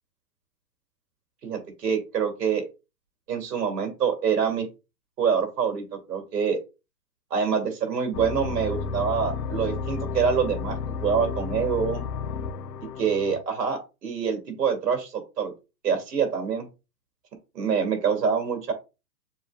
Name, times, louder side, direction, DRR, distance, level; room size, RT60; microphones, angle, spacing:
voice 1, 1.4-2.7 3.3-4.7 5.2-6.6 7.3-12.0 13.0-15.5 15.8-16.7 17.5-18.7, right 6 dB, 75° right, 4 dB, 2.4 m, -26 dB
sound 1, 8.1-13.4, left 5 dB, 70° left, 0.6 m, -32 dB
7.0 x 3.0 x 2.3 m, 0.28 s
hypercardioid pair, 155°, 49 cm